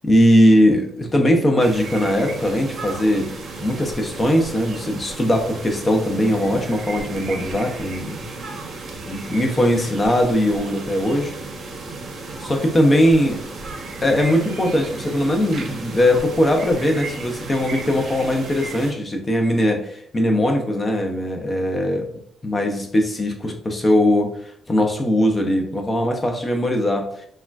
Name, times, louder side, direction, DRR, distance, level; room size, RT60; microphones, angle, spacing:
voice 1, 0.0-3.3 3.6-8.2 9.1-11.3 12.5-13.4 14.0-22.1 22.4-27.3, equal, 25° left, 3 dB, 0.6 m, -20 dB
sound 1, 1.6-18.9, right 3 dB, 50° right, 0.6 m, -34 dB
3.6 x 2.2 x 2.3 m, 0.67 s
cardioid pair, 90°, 0 cm